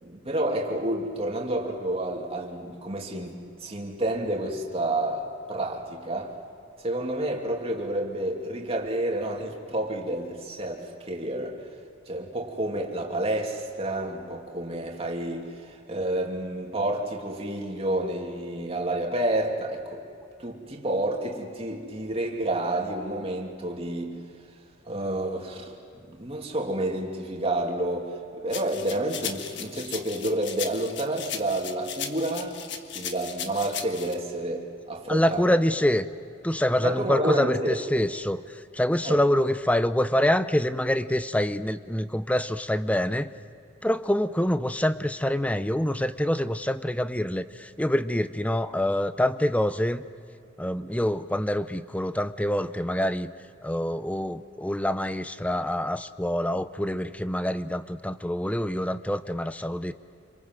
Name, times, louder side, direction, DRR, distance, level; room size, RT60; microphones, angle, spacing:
voice 1, 0.0-6.3 6.8-11.6 12.1-20.0 20.4-24.2 24.9-25.8 26.1-32.6 32.9-35.5 36.8-37.8 39.0-39.2, right 1 dB, 30° right, 1 dB, 2.8 m, -29 dB
sound 1, 28.5-34.1, left 8 dB, 60° left, 1.5 m, -36 dB
voice 2, 35.1-36.1 36.4-43.3 43.8-50.0 50.6-53.3 53.6-59.9, left 1 dB, 5° left, 13 dB, 0.6 m, -26 dB
27.5 x 25.5 x 7.7 m, 2.5 s
head